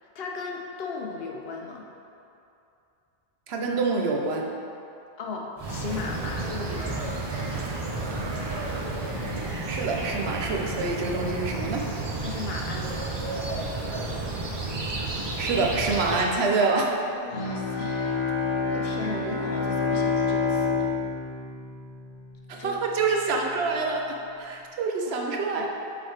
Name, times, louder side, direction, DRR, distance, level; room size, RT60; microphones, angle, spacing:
voice 1, 0.0-1.9 5.2-7.0 12.2-13.1 17.2-20.9 22.5-22.8 25.1-25.7, left 4 dB, 70° left, 0 dB, 0.9 m, -37 dB
voice 2, 3.5-4.5 9.7-11.9 15.4-17.0 22.5-25.7, right 3 dB, 80° right, 1 dB, 0.9 m, -26 dB
sound 1, 5.6-16.3, right 2 dB, 35° right, 0.5 m, -31 dB
Bowed string instrument, 17.3-22.6, left 4 dB, 85° left, 1.4 m, -28 dB
7.6 x 4.0 x 3.2 m, 2.7 s
omnidirectional pair, 1.1 m